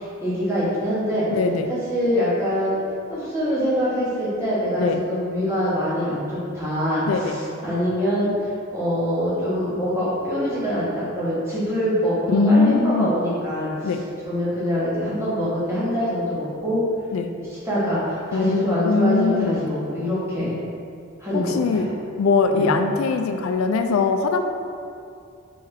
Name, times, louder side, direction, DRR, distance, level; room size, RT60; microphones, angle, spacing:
voice 1, 0.2-1.3 1.7-2.8 3.1-13.7 14.2-16.8 17.5-20.6 21.2-21.8 22.5-22.7, equal, 15° right, -9 dB, 1.2 m, -24 dB
voice 2, 1.3-1.7 4.8-5.0 7.1-7.4 12.3-13.1 13.8-14.0 17.1-17.3 18.3-19.6 21.3-21.9 22.2-24.4, left 4 dB, 85° left, 6 dB, 0.3 m, -21 dB
4.2 x 3.4 x 3.6 m, 2.4 s
head